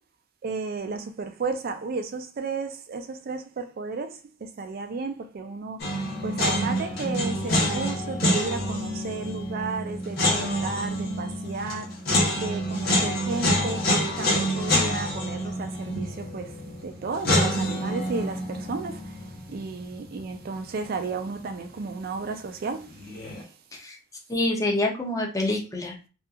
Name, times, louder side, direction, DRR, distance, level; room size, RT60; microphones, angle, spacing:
voice 1, 0.4-5.8 6.2-11.9 12.3-13.9 14.2-23.5, right 4 dB, 50° right, 0.4 m, -33 dB
sound 1, 5.8-20.8 21.1-21.2 22.9-23.4, equal, 50° left, 0.9 m, -27 dB
voice 2, 24.3-26.1, left 1 dB, 15° left, 0.5 m, -27 dB
2.7 x 2.3 x 2.3 m
head